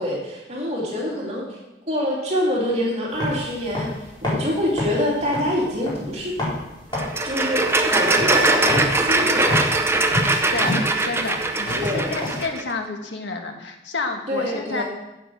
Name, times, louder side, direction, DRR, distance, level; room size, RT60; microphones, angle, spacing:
voice 1, 0.0-1.4 1.8-3.9 4.2-6.3 7.2-9.7 11.8-12.2 14.3-14.8, left 1 dB, 35° right, -4 dB, 2.8 m, -25 dB
sound 1, 3.1-12.4, left 1 dB, 25° left, 4.3 m, -30 dB
sound 2, 6.9-12.6, right 2 dB, 15° right, 0.7 m, -21 dB
voice 2, 10.5-14.8, left 3 dB, 80° left, 4 dB, 1.4 m, -30 dB
8.7 x 8.5 x 6.2 m, 0.96 s
head